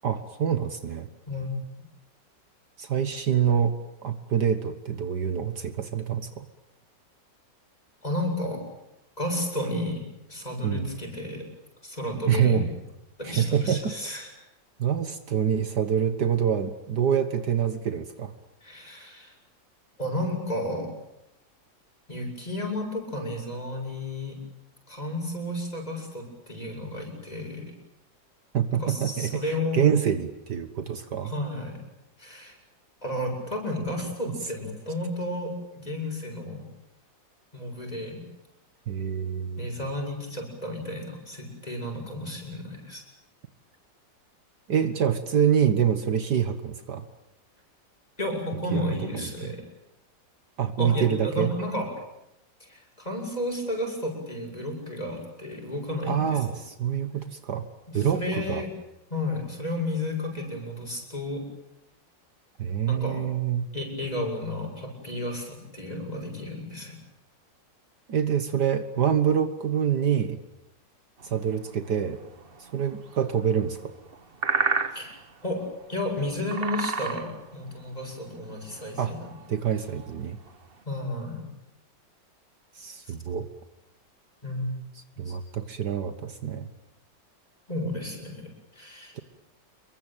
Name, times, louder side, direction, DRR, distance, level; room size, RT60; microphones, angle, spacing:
voice 1, 0.0-1.1 2.8-3.8 4.0-6.5 10.6-10.9 12.3-12.7 13.2-13.9 14.8-18.3 28.5-31.3 38.9-39.7 44.7-47.1 48.7-49.5 50.6-51.5 56.1-57.6 57.9-58.6 62.6-63.7 68.1-70.4 71.2-72.2 72.6-73.9 79.0-79.1 79.5-80.4 82.8-83.5 85.2-86.7, right 8 dB, 65° right, 9 dB, 1.9 m, -26 dB
voice 2, 1.3-1.6 8.0-8.6 9.2-10.0 10.3-11.5 11.8-12.6 13.2-14.3 18.6-19.3 20.0-20.9 22.1-24.4 24.9-27.7 28.7-29.9 31.2-31.8 32.2-32.6 33.0-36.7 37.5-38.2 39.6-43.0 48.2-49.6 50.8-51.9 52.6-56.4 57.9-58.7 59.1-61.4 62.9-63.3 63.7-67.0 74.9-75.6 75.9-79.3 80.9-81.5 83.1-83.2 84.4-84.8 85.1-85.3 87.7-89.2, left 1 dB, 20° left, 2 dB, 7.7 m, -32 dB
sound 1, 71.2-80.8, right 4 dB, 35° right, 1.4 m, -34 dB
27.5 x 23.0 x 9.1 m, 0.87 s
omnidirectional pair, 2.0 m